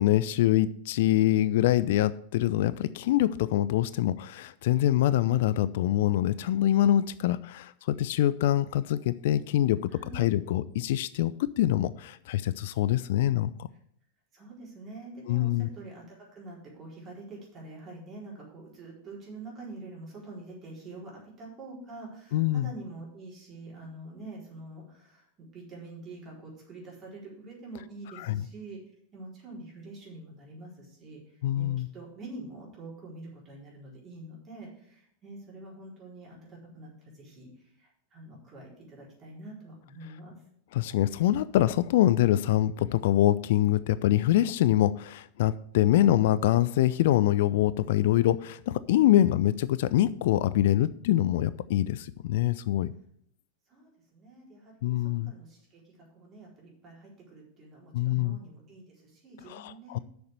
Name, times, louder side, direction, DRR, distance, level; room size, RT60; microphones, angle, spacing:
voice 1, 0.0-13.7 15.3-15.7 22.3-22.7 28.2-28.4 31.4-31.9 40.7-52.9 54.8-55.3 57.9-58.4 59.5-60.0, left 13 dB, 55° left, 16 dB, 0.3 m, -25 dB
voice 2, 9.9-10.3 14.3-25.3 25.5-28.8 29.1-40.4 49.1-49.3 53.7-60.0, right 2 dB, 30° right, -3 dB, 4.3 m, -46 dB
6.9 x 6.5 x 7.6 m, 0.67 s
figure-of-eight pair, 90°, 0 cm